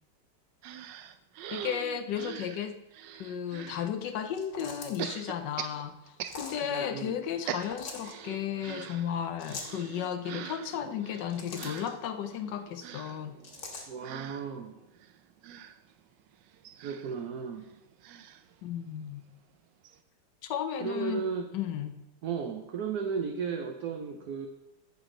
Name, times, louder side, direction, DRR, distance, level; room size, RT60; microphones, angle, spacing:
sound 1, 0.6-3.9 5.0-7.0 7.2-19.2 19.5-19.6 19.8-20.0, right 10 dB, 85° right, 1.3 m, -43 dB
voice 1, 1.5-2.8 3.1-13.4 18.6-19.2 20.4-21.2 21.5-22.0, left 9 dB, 80° left, 9 dB, 1.3 m, -34 dB
sound 2, 4.3-5.1 6.2-6.6 7.6-8.1 9.4-9.8 11.0-11.9 13.4-13.9, left 3 dB, 60° left, 2.0 m, -42 dB
voice 2, 6.7-7.2 13.9-14.8 16.8-17.7 20.8-21.5 22.2-24.5, right 6 dB, 65° right, 4 dB, 1.2 m, -34 dB
14.5 x 6.1 x 3.9 m, 0.92 s
omnidirectional pair, 1.9 m